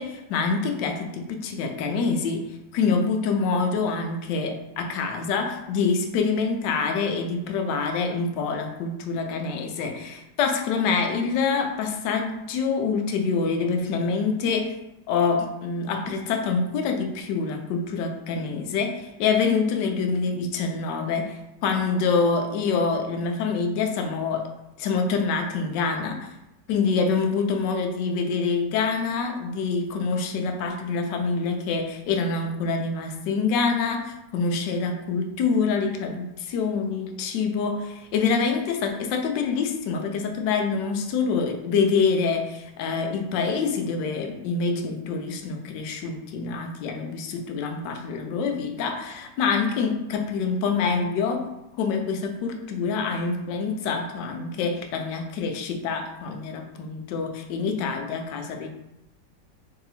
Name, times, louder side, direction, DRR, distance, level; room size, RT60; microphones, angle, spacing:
voice 1, 0.0-14.7 15.1-24.5 24.8-26.3 26.7-51.5 51.8-58.7, left 5 dB, 75° left, 4 dB, 1.2 m, -26 dB
3.5 x 2.7 x 4.1 m, 0.91 s
omnidirectional pair, 2.0 m